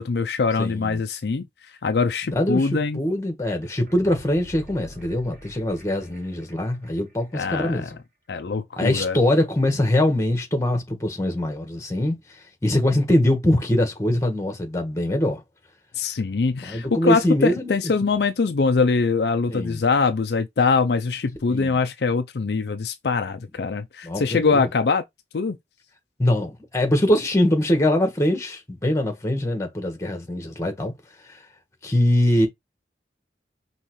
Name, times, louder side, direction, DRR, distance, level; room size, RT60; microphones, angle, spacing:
voice 1, 0.0-1.5 1.8-3.0 7.3-7.9 8.3-9.2 15.9-25.0 25.3-25.6, left 4 dB, 65° left, 0.5 m, -23 dB
voice 2, 0.6-1.0 2.3-7.9 8.8-15.4 16.6-17.7 19.5-19.8 21.5-21.8 24.0-24.7 26.2-30.9 31.3-31.4 31.8-32.5, left 1 dB, 15° left, 1.4 m, -23 dB
sound 1, 3.6-6.5 6.8-6.9, equal, 50° right, 2.2 m, -46 dB
5.6 x 3.1 x 3.1 m
head